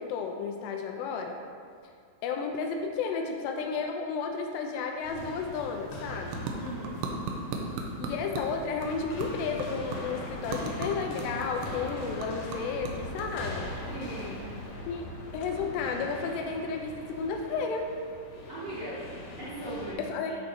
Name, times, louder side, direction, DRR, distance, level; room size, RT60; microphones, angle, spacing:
voice 1, 0.0-1.4 2.2-6.4 8.0-13.6 14.9-15.1 15.3-17.9 20.1-20.3, left 5 dB, 80° left, 3 dB, 2.7 m, -32 dB
sound 1, 5.0-19.9, left 1 dB, 60° left, 2.3 m, -41 dB
sound 2, 5.3-14.8, right 3 dB, 80° right, 3.0 m, -39 dB
voice 2, 6.6-7.1 13.9-14.5 18.5-19.1 19.4-20.4, right 1 dB, 55° right, -10 dB, 1.6 m, -39 dB
13.0 x 4.5 x 4.2 m, 2.1 s
omnidirectional pair, 5.0 m